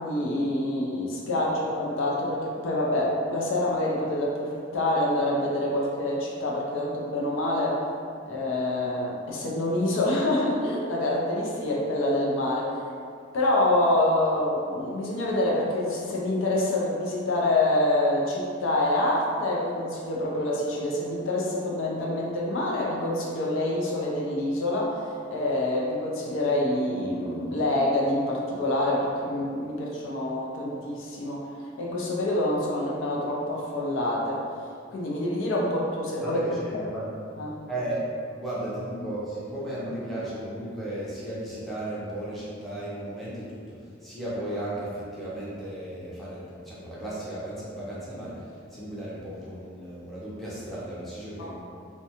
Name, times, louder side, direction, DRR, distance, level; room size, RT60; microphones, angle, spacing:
voice 1, 0.0-7.8 8.3-12.8 13.3-31.5 31.8-34.4 34.9-36.4 37.4-37.6 51.5-51.6, left 1 dB, 75° left, -3 dB, 0.5 m, -26 dB
voice 2, 36.2-37.2 37.7-38.1 38.4-51.5, right 1 dB, ahead, -10 dB, 0.6 m, -35 dB
2.6 x 2.2 x 2.8 m, 2.3 s
head